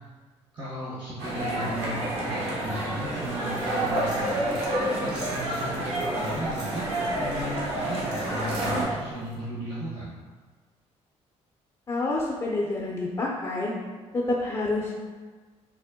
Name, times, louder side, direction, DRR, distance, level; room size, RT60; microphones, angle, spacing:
voice 1, 0.5-10.2, right 1 dB, 40° right, -8 dB, 1.0 m, -36 dB
sound 1, 1.2-8.8, right 1 dB, 60° right, 1.0 m, -29 dB
sound 2, 3.2-9.4, right 1 dB, 85° right, 0.9 m, -47 dB
voice 2, 11.9-13.7 14.1-15.0, left 2 dB, 25° left, -3 dB, 0.5 m, -28 dB
3.6 x 2.1 x 3.5 m, 1.4 s
cardioid pair, 85°, 12 cm